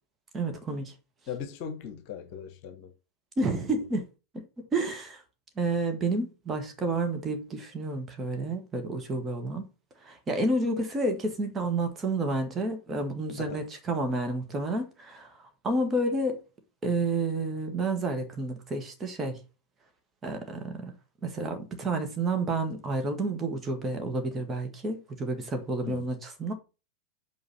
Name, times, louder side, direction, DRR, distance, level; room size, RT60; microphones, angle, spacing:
voice 1, 0.3-0.9 3.4-4.0 4.3-4.4 4.7-5.2 5.6-9.7 10.0-15.3 15.6-16.4 16.8-19.4 20.2-20.9 21.2-26.1 26.4-26.5, right 2 dB, 20° right, 1.9 m, -30 dB
voice 2, 1.3-2.9 3.4-3.8 13.4-13.6 25.8-26.1, left 7 dB, 45° left, 1.3 m, -39 dB
5.6 x 5.1 x 5.6 m
figure-of-eight pair, 90°, 0 cm